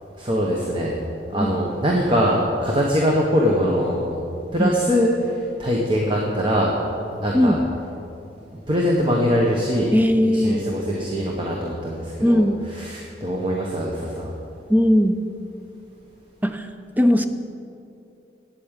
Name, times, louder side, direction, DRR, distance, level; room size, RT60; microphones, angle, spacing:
voice 1, 0.2-1.0 1.3-4.2 4.5-6.7 7.2-7.6 8.5-9.9 10.2-12.5 12.7-14.3, equal, 30° right, -2 dB, 1.1 m, -22 dB
voice 2, 9.9-10.7 12.2-12.6 14.7-15.2 16.4-16.7 17.0-17.3, equal, 10° right, 7 dB, 0.5 m, -18 dB
8.7 x 8.5 x 8.9 m, 2.7 s
head